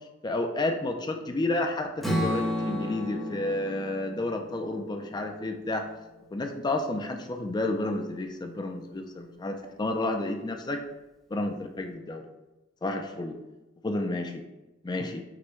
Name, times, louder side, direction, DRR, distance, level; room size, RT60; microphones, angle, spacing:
voice 1, 0.2-5.8 6.3-10.8 11.3-12.2 12.8-13.4 13.8-14.4 14.8-15.2, left 2 dB, 20° left, 5 dB, 0.4 m, -31 dB
Strum, 2.0-6.2, equal, ahead, 0.8 m, -33 dB
5.9 x 2.2 x 3.0 m, 1.0 s
head